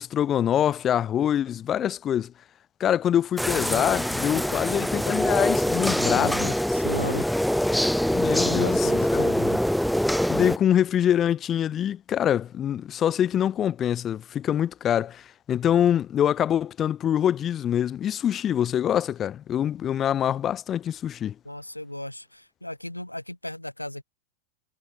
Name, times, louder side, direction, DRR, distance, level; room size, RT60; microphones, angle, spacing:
voice 1, 0.0-2.3 2.8-6.5 8.1-9.3 10.3-21.3, left 10 dB, 25° left, 0.3 m, -25 dB
sound 1, 3.4-10.6, equal, ahead, 0.8 m, -24 dB
voice 2, 6.0-7.3 8.5-9.6 21.4-24.0, left 1 dB, 85° left, 1.6 m, -36 dB
figure-of-eight pair, 90°, 0 cm